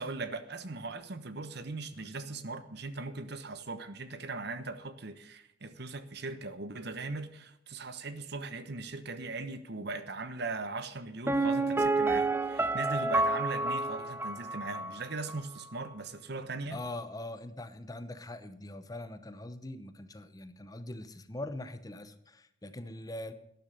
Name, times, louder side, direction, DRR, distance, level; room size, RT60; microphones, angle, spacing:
voice 1, 0.0-16.8, right 3 dB, 60° right, 1.1 m, -39 dB
Piano, 11.3-15.0 15.3-15.4, right 2 dB, 10° right, 0.6 m, -29 dB
voice 2, 16.7-23.3, left 1 dB, 20° left, 0.8 m, -42 dB
12.0 x 10.5 x 5.3 m
head